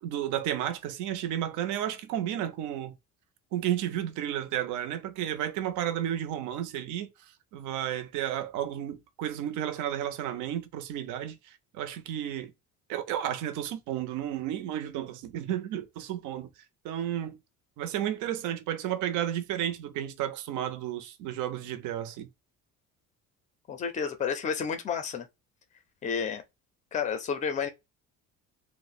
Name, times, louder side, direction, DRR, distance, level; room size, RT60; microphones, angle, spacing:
voice 1, 0.0-2.9 3.5-7.1 7.5-12.5 12.9-16.5 16.8-17.4 17.8-22.3, right 11 dB, 60° right, 0.6 m, -32 dB
voice 2, 23.7-25.3 26.0-26.4 26.9-27.7, left 6 dB, 25° left, 0.5 m, -30 dB
2.7 x 2.1 x 4.0 m
cardioid pair, 170°, 33 cm